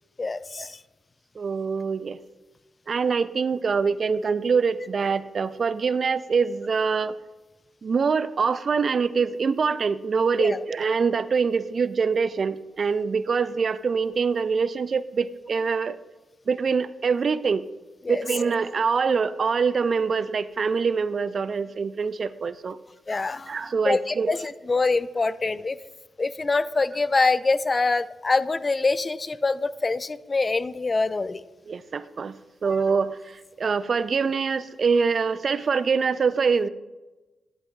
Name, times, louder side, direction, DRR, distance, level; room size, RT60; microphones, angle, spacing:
voice 1, 0.2-0.8 10.4-10.6 18.1-18.2 23.1-23.6 23.9-25.8 26.2-31.4, left 3 dB, 35° left, 16 dB, 0.3 m, -25 dB
voice 2, 1.4-2.2 2.9-7.1 7.8-16.0 16.5-17.6 18.1-22.8 23.5-24.4 25.3-25.4 31.7-32.3 32.6-36.7, right 5 dB, 55° right, 16 dB, 0.3 m, -24 dB
9.8 x 8.7 x 2.3 m, 1.1 s
hypercardioid pair, 40°, 0 cm